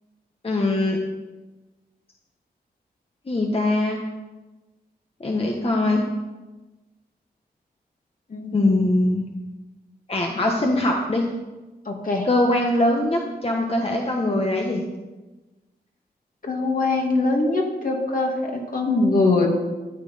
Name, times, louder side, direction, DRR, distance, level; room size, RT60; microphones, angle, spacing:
voice 1, 0.4-1.0 3.3-4.0 5.2-6.0 8.5-9.2 10.1-11.3 12.2-14.8, left 1 dB, 35° left, 0 dB, 1.4 m, -22 dB
voice 2, 8.3-8.8 11.9-12.3 16.4-19.5, left 3 dB, 55° left, 0 dB, 2.6 m, -22 dB
13.0 x 9.0 x 5.7 m, 1.2 s
wide cardioid pair, 95°, 17 cm